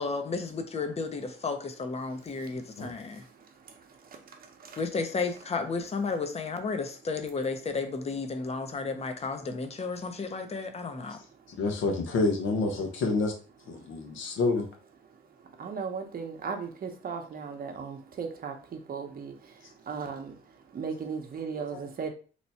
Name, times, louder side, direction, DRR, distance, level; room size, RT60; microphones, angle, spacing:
voice 1, 0.0-3.2 4.8-11.2, left 4 dB, 30° left, 0.7 m, -33 dB
voice 2, 11.6-13.3 13.7-14.6 21.7-21.8, left 3 dB, 80° left, 1.0 m, -28 dB
voice 3, 15.6-18.5 18.9-19.3 19.9-20.3 20.7-22.1, right 5 dB, 50° right, 0.8 m, -36 dB
3.0 x 2.2 x 4.1 m
cardioid pair, 90°, 20 cm